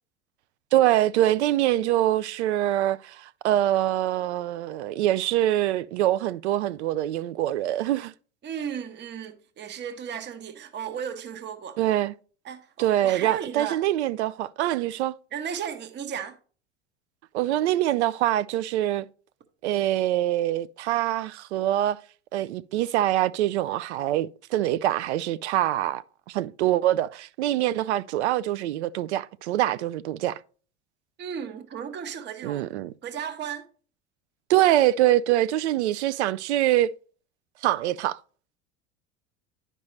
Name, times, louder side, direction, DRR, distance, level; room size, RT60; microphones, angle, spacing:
voice 1, 0.7-8.1 11.8-12.1 12.8-15.1 17.3-19.1 19.6-22.0 22.3-30.4 32.4-32.9 34.5-36.9 37.6-38.2, right 13 dB, 65° right, 0.5 m, -24 dB
voice 2, 8.4-11.8 12.4-13.8 15.3-16.4 31.2-32.7 33.0-33.7, right 8 dB, 30° right, 1.0 m, -35 dB
10.5 x 5.3 x 3.1 m
figure-of-eight pair, 80°, 36 cm